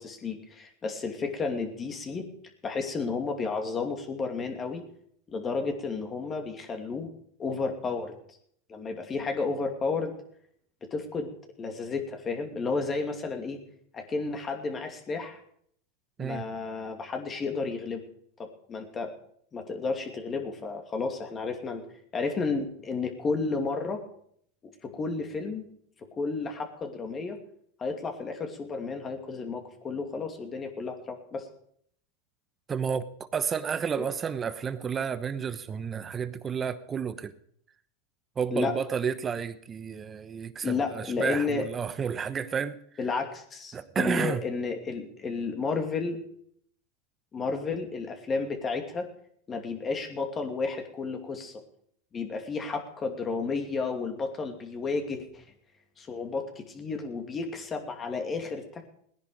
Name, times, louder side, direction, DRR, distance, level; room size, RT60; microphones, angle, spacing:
voice 1, 0.0-2.3 2.6-4.8 5.3-7.1 7.4-8.1 8.7-10.1 10.9-11.3 11.6-13.6 13.9-15.4 16.2-18.0 18.4-19.1 19.5-21.8 22.1-24.0 24.8-25.6 26.1-27.4 27.8-31.5 34.0-34.1 38.5-38.7 40.6-41.6 43.0-46.2 47.3-49.1 49.5-51.6 52.1-55.4 56.0-58.9, left 4 dB, 25° left, 4 dB, 2.6 m, -32 dB
voice 2, 32.7-37.3 38.4-42.8 43.7-44.4, right 7 dB, 25° right, 13 dB, 1.0 m, -31 dB
18.5 x 10.5 x 5.1 m, 0.66 s
hypercardioid pair, 110°, 0 cm